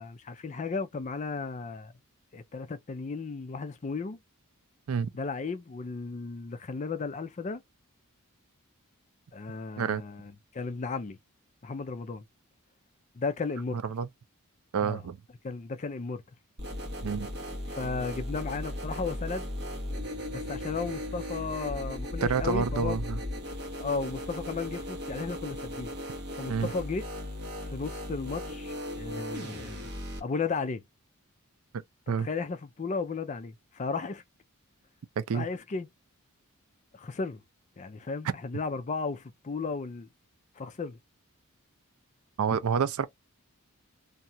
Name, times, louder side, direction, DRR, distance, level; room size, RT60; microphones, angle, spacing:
voice 1, 0.0-1.9 2.3-4.2 5.1-7.6 9.3-11.2 11.6-12.2 13.1-13.8 14.8-15.1 15.4-16.2 17.7-19.5 20.3-23.0 23.8-25.9 26.4-27.0 27.6-29.9 30.2-30.8 32.1-34.2 35.3-35.9 36.9-37.4 37.8-40.1 40.6-41.0, left 4 dB, 30° left, 0.4 m, -34 dB
voice 2, 14.7-15.2 17.0-17.3 22.2-23.2 26.5-26.7 32.1-32.3 35.2-35.5 42.4-43.1, right 6 dB, 75° right, 0.4 m, -28 dB
sound 1, 16.6-30.2, left 1 dB, 50° right, 1.2 m, -37 dB
2.7 x 2.3 x 2.6 m
head